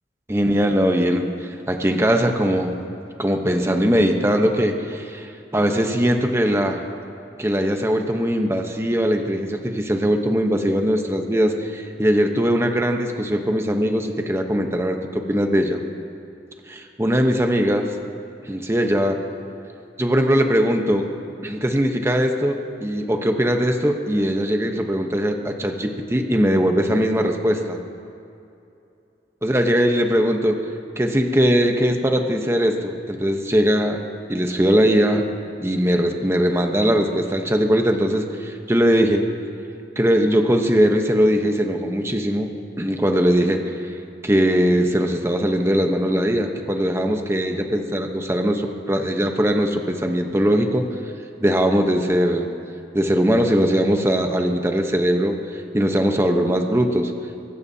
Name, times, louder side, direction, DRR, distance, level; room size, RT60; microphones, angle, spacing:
voice 1, 0.3-2.7 3.2-6.9 7.4-15.8 16.7-17.9 18.4-19.2 20.0-21.1 21.4-27.8 29.4-30.6 31.0-34.0 34.3-35.2 35.6-39.3 40.0-42.5 42.8-43.6 44.2-50.9 51.4-52.5 52.9-57.1, equal, 15° right, 4 dB, 0.9 m, -20 dB
23.5 x 16.0 x 2.8 m, 2.7 s
head